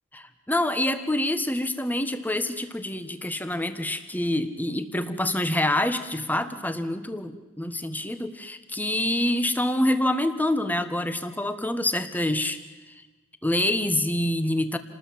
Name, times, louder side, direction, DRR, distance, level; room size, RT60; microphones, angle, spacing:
voice 1, 0.1-12.6 13.4-14.8, left 1 dB, 10° left, 10 dB, 1.4 m, -26 dB
28.5 x 20.0 x 7.8 m, 1.2 s
head